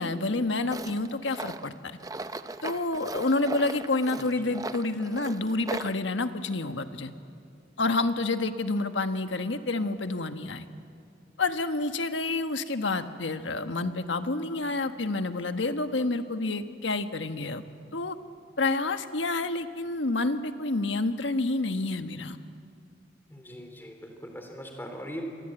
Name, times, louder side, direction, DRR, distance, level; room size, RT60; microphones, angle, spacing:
voice 1, 0.0-1.7 2.6-7.1 7.8-10.7 11.4-17.6 17.9-18.1 18.6-22.4, left 2 dB, 90° left, 8 dB, 1.4 m, -29 dB
Tools, 0.7-6.0, right 2 dB, 20° right, 0.6 m, -38 dB
voice 2, 4.2-4.5 23.3-25.5, equal, 10° left, 4 dB, 3.5 m, -40 dB
27.5 x 23.0 x 9.0 m, 2.4 s
head